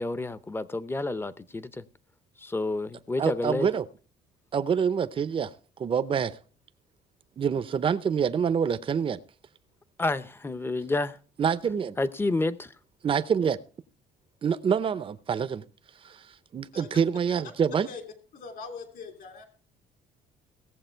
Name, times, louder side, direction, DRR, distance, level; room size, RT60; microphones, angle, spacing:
voice 1, 0.0-1.8 2.4-3.7 10.0-11.2 12.0-12.7, left 2 dB, 15° left, 0.7 m, -29 dB
voice 2, 3.2-3.8 4.5-5.5 5.8-6.3 7.4-9.2 11.4-11.9 13.0-13.6 14.4-15.6 16.0-16.2 16.5-17.9, right 7 dB, 30° right, 0.6 m, -26 dB
voice 3, 18.3-19.4, left 5 dB, 60° left, 2.7 m, -41 dB
17.0 x 7.3 x 4.4 m
cardioid pair, 110°, 17 cm